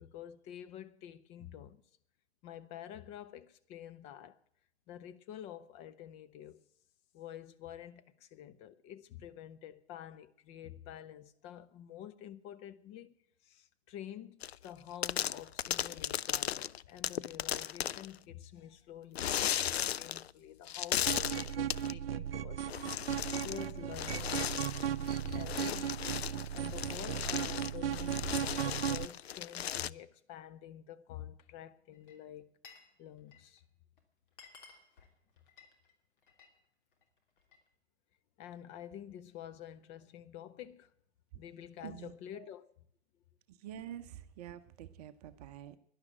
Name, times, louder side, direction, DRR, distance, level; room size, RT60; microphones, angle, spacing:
voice 1, 0.0-1.8 2.4-4.4 4.9-6.6 7.1-13.1 13.4-22.8 23.3-26.0 26.5-32.6 33.0-33.6 38.4-40.9 41.4-42.7, left 11 dB, 20° left, 0.6 m, -48 dB
sound 1, 14.4-14.7 15.0-18.1 19.1-20.3 20.7-21.9 22.7-23.7 23.9-29.9, left 10 dB, 65° left, 0.5 m, -36 dB
sound 2, 21.1-29.1, right 9 dB, 60° right, 0.6 m, -36 dB
Glass, 31.9-32.9 33.2-33.6 34.0-34.1 34.3-36.6 36.9-37.7, left 5 dB, 50° left, 3.1 m, -58 dB
voice 2, 41.8-42.5 43.5-45.8, right 10 dB, 35° right, 0.9 m, -47 dB
12.0 x 11.5 x 8.8 m
figure-of-eight pair, 120°, 33 cm